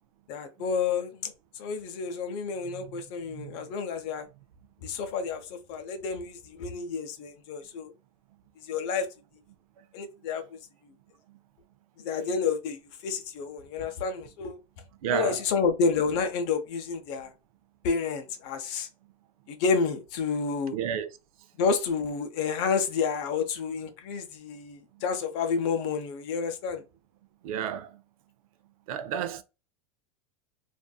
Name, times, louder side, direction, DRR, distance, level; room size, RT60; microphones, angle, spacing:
voice 1, 0.3-4.3 4.8-7.9 8.6-9.1 9.9-10.6 12.0-14.6 15.1-17.3 17.8-18.9 19.5-20.8 21.6-26.8, left 5 dB, 55° left, 0.7 m, -30 dB
voice 2, 2.7-3.0 3.3-3.5 15.0-15.4 20.7-21.1 27.4-27.9 28.9-29.4, right 9 dB, 75° right, 0.5 m, -31 dB
2.5 x 2.5 x 2.3 m
supercardioid pair, 125°, 18 cm